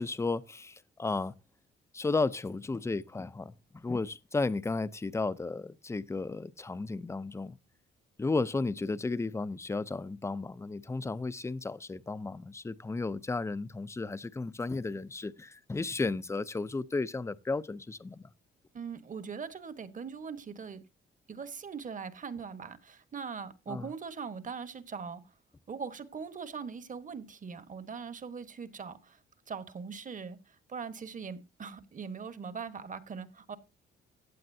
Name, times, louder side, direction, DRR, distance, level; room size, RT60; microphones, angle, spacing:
voice 1, 0.0-1.3 1.9-7.6 8.2-18.3 23.7-23.9, left 3 dB, 15° left, 0.6 m, -34 dB
voice 2, 18.7-20.8 21.3-25.2 25.7-29.2 29.5-33.6, right 5 dB, 40° right, 1.3 m, -41 dB
15.5 x 8.6 x 2.7 m
cardioid pair, 90°, 20 cm